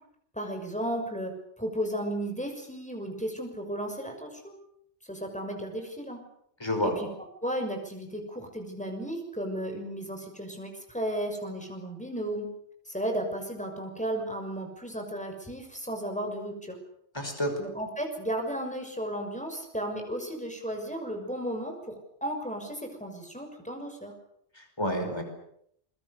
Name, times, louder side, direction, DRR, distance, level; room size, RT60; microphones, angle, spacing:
voice 1, 0.3-4.6 5.1-6.2 6.8-7.1 7.4-12.5 12.8-16.8 17.6-21.9 22.2-24.1, right 1 dB, 5° left, 3 dB, 6.4 m, -34 dB
voice 2, 6.6-6.9 17.1-17.5 24.6-25.2, equal, 20° left, 5 dB, 5.3 m, -29 dB
28.0 x 23.5 x 6.9 m, 0.71 s
omnidirectional pair, 1.2 m